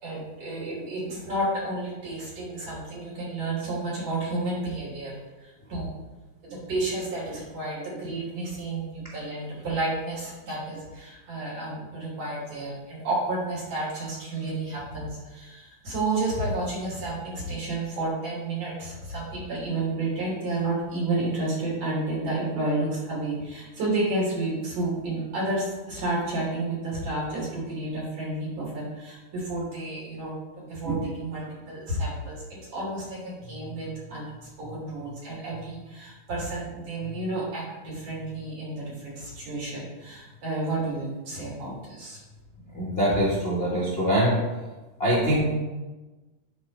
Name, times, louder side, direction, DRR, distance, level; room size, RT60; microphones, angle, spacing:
voice 1, 0.0-5.2 5.4-5.9 6.4-32.4 32.7-34.3 34.7-42.2, right 2 dB, 60° right, -6 dB, 4.2 m, -31 dB
voice 2, 42.7-44.4 45.0-45.5, equal, 45° left, -5 dB, 0.7 m, -23 dB
11.0 x 4.2 x 4.1 m, 1.2 s
omnidirectional pair, 3.4 m